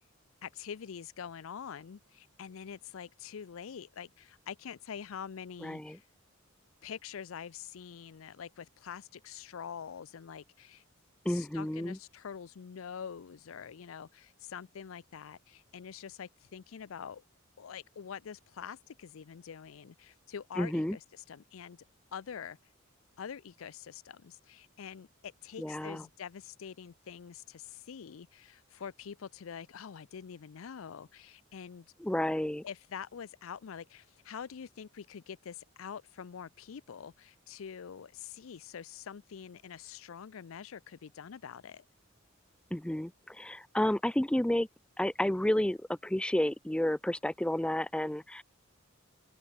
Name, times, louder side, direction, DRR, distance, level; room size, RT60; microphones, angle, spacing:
voice 1, 0.4-6.0 6.8-10.8 11.3-17.2 17.6-21.0 21.3-21.8 22.1-22.6 23.2-31.9 32.6-41.8, left 7 dB, 75° left, 0.5 m, -45 dB
voice 2, 5.6-6.0 11.2-12.0 20.6-21.0 25.6-26.0 32.0-32.6 42.7-44.7 45.0-48.4, left 1 dB, 5° left, 0.4 m, -31 dB
open air
head